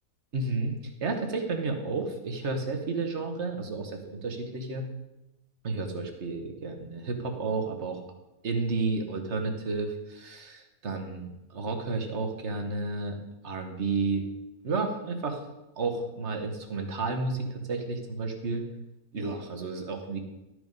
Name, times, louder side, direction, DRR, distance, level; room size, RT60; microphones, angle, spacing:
voice 1, 0.3-4.9 5.6-8.0 8.4-13.2 13.4-14.2 14.6-15.4 15.8-18.7 19.1-20.2, right 3 dB, 50° right, 5 dB, 1.6 m, -31 dB
12.5 x 6.4 x 5.3 m, 0.95 s
omnidirectional pair, 1.5 m